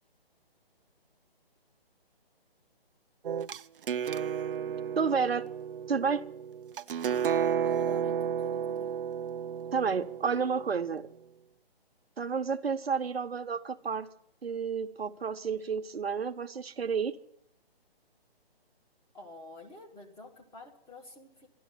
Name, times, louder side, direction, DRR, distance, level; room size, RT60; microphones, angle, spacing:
sound 1, 3.2-11.0, right 8 dB, 60° right, 0.5 m, -32 dB
voice 1, 5.0-5.5 5.9-6.3 9.7-11.1 12.2-14.1 14.4-17.2, right 6 dB, 75° right, 0.9 m, -30 dB
voice 2, 7.6-9.0 19.1-21.5, left 2 dB, 10° left, 1.1 m, -48 dB
12.5 x 11.5 x 8.2 m
figure-of-eight pair, 150°, 31 cm